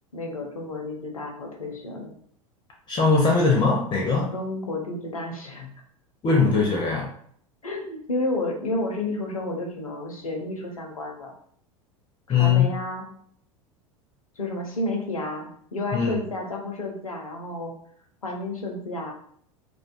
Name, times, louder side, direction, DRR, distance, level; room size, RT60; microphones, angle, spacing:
voice 1, 0.1-2.1 4.3-5.7 7.6-11.3 12.3-13.1 14.4-17.7 18.2-19.1, left 2 dB, 85° left, 2 dB, 0.6 m, -31 dB
voice 2, 2.9-4.3 6.2-7.1 12.3-12.7 15.9-16.1, left 5 dB, 25° left, -1 dB, 0.5 m, -20 dB
2.4 x 2.2 x 2.3 m, 0.62 s
figure-of-eight pair, 80°, 18 cm